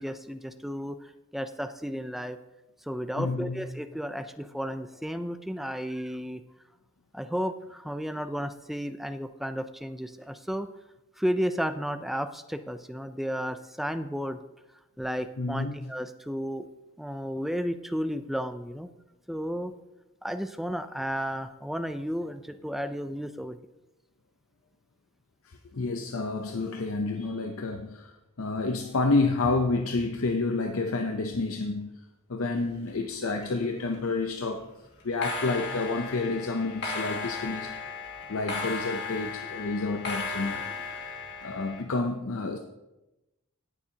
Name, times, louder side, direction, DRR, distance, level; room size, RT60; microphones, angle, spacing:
voice 1, 0.0-2.4 2.9-6.4 7.1-10.7 11.2-14.4 15.0-16.7 17.0-18.9 19.3-19.7 20.2-23.6, equal, ahead, 9 dB, 0.4 m, -33 dB
voice 2, 3.2-3.7 15.4-15.7 25.4-34.7 35.0-37.8 38.3-40.7 41.4-42.6, left 3 dB, 70° left, 5 dB, 0.7 m, -29 dB
sound 1, 32.6-33.5 33.7-34.1 35.0-41.8, left 4 dB, 50° left, 2.1 m, -36 dB
17.5 x 7.1 x 2.8 m, 0.98 s
head